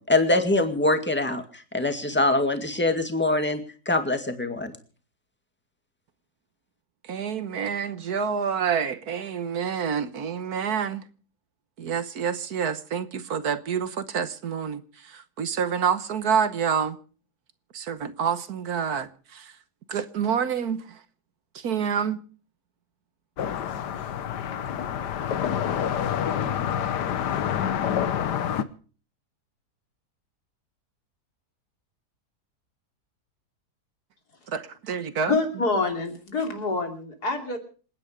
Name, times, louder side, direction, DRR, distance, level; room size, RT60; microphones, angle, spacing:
voice 1, 0.0-3.6 3.9-4.7, left 2 dB, 5° left, 2.0 m, -23 dB
voice 2, 7.0-11.0 11.8-17.0 17.7-19.5 19.9-20.8 21.5-22.2 34.5-35.4, right 7 dB, 65° right, 1.5 m, -28 dB
sound 1, 23.4-28.6, left 9 dB, 85° left, 1.6 m, -27 dB
voice 3, 35.3-37.6, left 3 dB, 70° left, 3.5 m, -26 dB
27.5 x 9.7 x 5.0 m
omnidirectional pair, 1.7 m